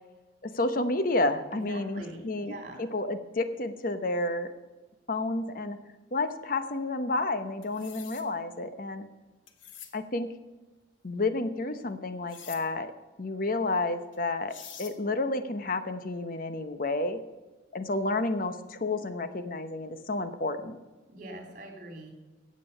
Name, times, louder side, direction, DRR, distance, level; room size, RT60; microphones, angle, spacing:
voice 1, 0.4-4.5 5.1-5.8 6.1-9.1 9.9-10.3 11.0-12.9 13.2-14.5 14.8-17.2 17.7-20.8, left 2 dB, 45° left, 10 dB, 0.9 m, -30 dB
voice 2, 1.5-2.8 21.1-22.1, right 1 dB, 45° right, 2 dB, 3.0 m, -43 dB
sound 1, 7.6-8.3 9.5-9.9 12.3-12.6 14.1-14.2 14.5-15.0, left 8 dB, 80° left, 1.3 m, -46 dB
16.0 x 7.6 x 5.5 m, 1.2 s
head